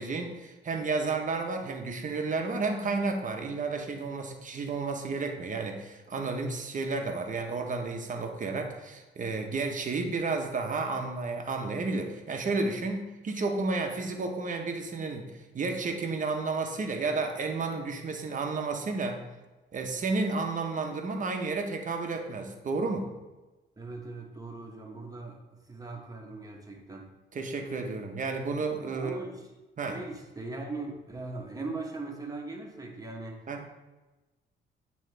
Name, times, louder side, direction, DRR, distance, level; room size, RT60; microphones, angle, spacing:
voice 1, 0.0-19.2 19.7-23.1 27.3-29.2 29.8-30.0 33.5-33.7, right 3 dB, 40° right, 3 dB, 0.9 m, -32 dB
voice 2, 23.8-25.4 25.7-27.1 28.9-29.5 29.9-33.5, right 3 dB, 20° right, 1 dB, 1.1 m, -39 dB
9.0 x 3.1 x 3.3 m, 1.1 s
cardioid pair, 90°, 20 cm